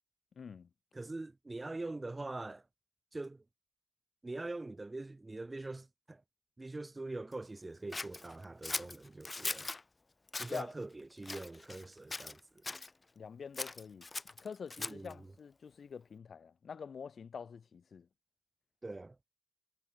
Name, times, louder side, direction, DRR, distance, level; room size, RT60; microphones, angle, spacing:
voice 1, 0.4-0.7 10.5-10.7 13.1-14.1 14.4-18.1, left 6 dB, 70° left, 4.9 m, -46 dB
voice 2, 0.9-2.6 3.1-3.4 4.2-6.2 6.6-9.7 10.4-12.4 14.8-15.2 18.8-19.2, right 2 dB, 25° right, 1.1 m, -43 dB
Scissors, 7.9-9.8 10.3-10.6 11.2-11.9 12.1-12.9 13.5-15.1, left 3 dB, 30° left, 0.6 m, -40 dB
wide cardioid pair, 130°, 0 cm